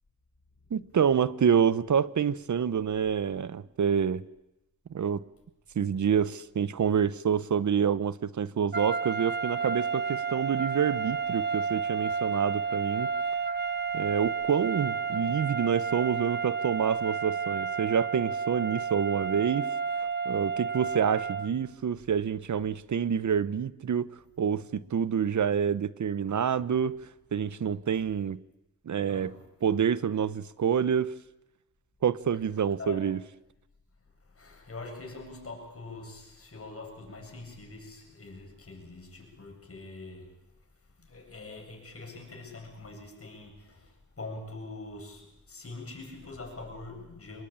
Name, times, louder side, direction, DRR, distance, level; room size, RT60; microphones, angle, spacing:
voice 1, 0.7-4.2 4.9-5.2 5.7-13.1 13.9-19.7 20.2-24.1 24.4-27.0 27.3-28.4 28.9-29.3 29.6-31.1 32.0-33.2, right 7 dB, 75° right, 0.9 m, -27 dB
sound 1, 8.7-21.6, right 6 dB, 35° right, 1.2 m, -31 dB
voice 2, 29.1-29.4 32.8-33.1 34.3-40.4 41.0-47.4, left 3 dB, 50° left, 7.9 m, -44 dB
26.5 x 21.0 x 8.9 m
wide cardioid pair, 75°, 30 cm